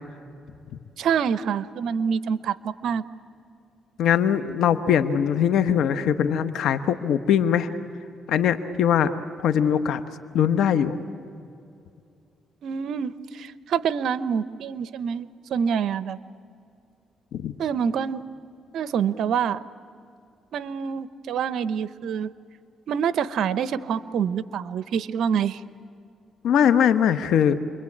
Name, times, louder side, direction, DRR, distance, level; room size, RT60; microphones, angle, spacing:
voice 1, 1.0-3.0 12.6-16.2 17.6-18.2 18.7-19.7 20.5-22.3 22.9-25.6, right 7 dB, 70° right, 15 dB, 0.9 m, -26 dB
voice 2, 4.0-7.7 8.3-9.1 9.4-10.0 10.3-11.0 17.3-17.5 26.4-27.5, left 8 dB, 75° left, 10 dB, 1.2 m, -21 dB
29.0 x 22.5 x 8.7 m, 2.5 s
cardioid pair, 90°, 0 cm